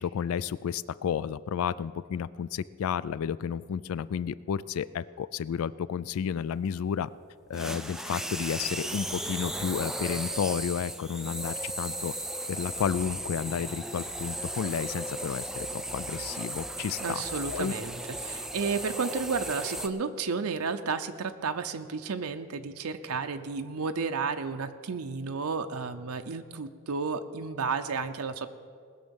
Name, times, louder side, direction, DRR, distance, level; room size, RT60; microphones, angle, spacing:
voice 1, 0.0-7.1 7.5-12.1 12.5-17.2 17.5-17.7, left 7 dB, 75° left, 18 dB, 0.3 m, -32 dB
sound 1, 7.5-19.9, right 1 dB, ahead, 0.3 m, -36 dB
voice 2, 17.0-28.5, right 5 dB, 85° right, 7 dB, 0.7 m, -32 dB
19.5 x 6.5 x 7.1 m, 2.2 s
head